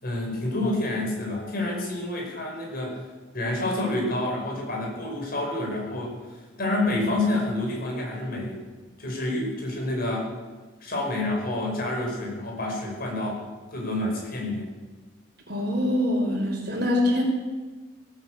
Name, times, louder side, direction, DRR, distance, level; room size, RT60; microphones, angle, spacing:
voice 1, 0.0-3.0 3.3-6.2 6.6-8.6 9.0-10.3 10.8-13.4 13.7-14.6, left 1 dB, 55° left, -1 dB, 5.6 m, -28 dB
voice 2, 15.5-17.2, left 1 dB, 60° right, 0 dB, 4.8 m, -24 dB
17.5 x 9.7 x 8.1 m, 1.3 s
head